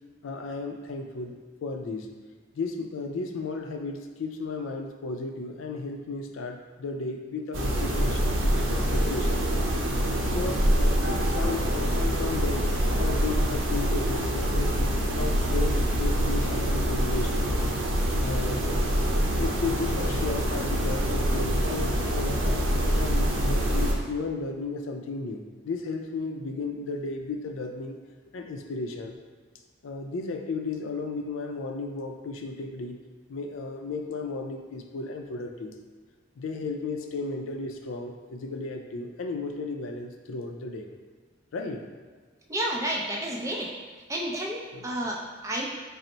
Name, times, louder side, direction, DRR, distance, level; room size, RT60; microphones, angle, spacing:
voice 1, 0.2-2.1 2.5-9.4 10.3-12.7 13.0-17.5 18.2-18.6 18.9-19.1 19.4-28.0 28.3-29.2 29.8-33.0 33.3-35.8 36.4-40.9 41.5-41.9 44.7-44.9, left 3 dB, 90° left, 4 dB, 0.4 m, -34 dB
sound 1, 7.5-23.9, equal, 85° right, 0.6 m, -25 dB
voice 2, 42.5-43.7 44.1-45.7, right 1 dB, 15° right, -1 dB, 0.4 m, -31 dB
3.9 x 2.0 x 4.3 m, 1.5 s
head